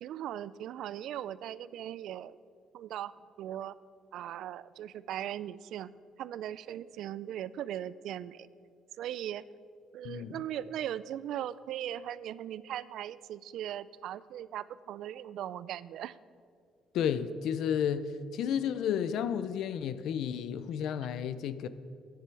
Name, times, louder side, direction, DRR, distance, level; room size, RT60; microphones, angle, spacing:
voice 1, 0.0-2.4 2.7-3.7 4.1-5.9 6.2-8.5 9.0-9.4 9.9-16.2, right 11 dB, 65° right, 0.3 m, -39 dB
voice 2, 10.0-10.4 16.9-21.7, left 8 dB, 70° left, 0.5 m, -32 dB
14.5 x 10.5 x 4.6 m
cardioid pair, 165°, 0 cm